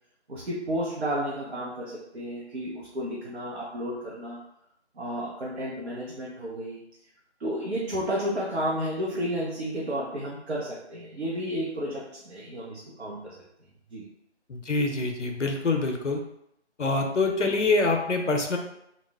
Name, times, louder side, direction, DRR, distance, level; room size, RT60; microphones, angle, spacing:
voice 1, 0.3-4.4 5.0-6.8 7.4-13.3 13.9-14.1, equal, 65° right, -5 dB, 0.7 m, -32 dB
voice 2, 14.5-16.2 16.8-18.6, left 3 dB, 90° left, 3 dB, 0.6 m, -25 dB
2.3 x 2.0 x 3.3 m, 0.78 s
figure-of-eight pair, 160°, 35 cm